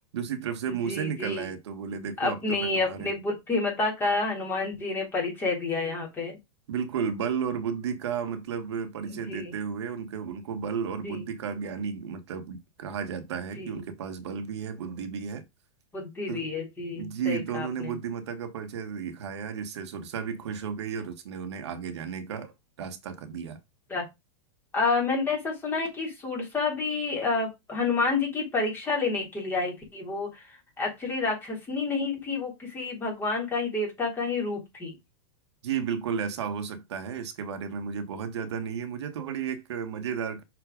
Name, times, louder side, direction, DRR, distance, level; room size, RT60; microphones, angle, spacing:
voice 1, 0.1-3.1 6.7-15.5 16.3-16.5 17.0-22.5 22.8-23.6 35.6-40.4, right 7 dB, 75° right, 1.6 m, -33 dB
voice 2, 0.7-1.5 2.2-6.4 9.1-9.5 11.0-11.2 13.5-13.8 15.9-17.9 23.9-24.1 24.7-35.0, left 3 dB, 15° left, 3.5 m, -29 dB
6.2 x 4.2 x 5.1 m
supercardioid pair, 150°, 14 cm